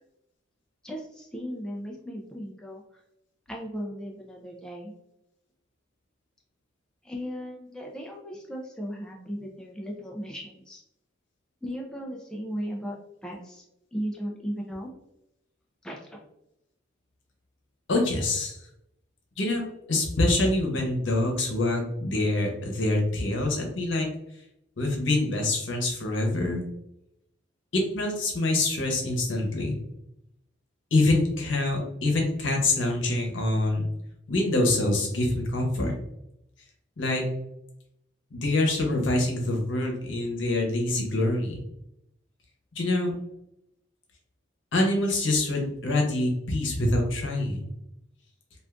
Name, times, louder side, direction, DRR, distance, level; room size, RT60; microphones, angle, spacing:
voice 1, 0.8-2.8 3.5-4.9 7.0-10.8 11.6-13.0 13.2-13.6 13.9-14.9 15.8-16.2, equal, 5° left, -1 dB, 0.3 m, -36 dB
voice 2, 17.9-18.6 19.4-24.1 24.8-26.6 27.7-29.8 30.9-33.9 34.3-36.0 37.0-37.2 38.3-41.6 42.7-43.1 44.7-47.7, left 2 dB, 80° left, 1 dB, 0.8 m, -25 dB
2.5 x 2.4 x 3.4 m, 0.81 s
head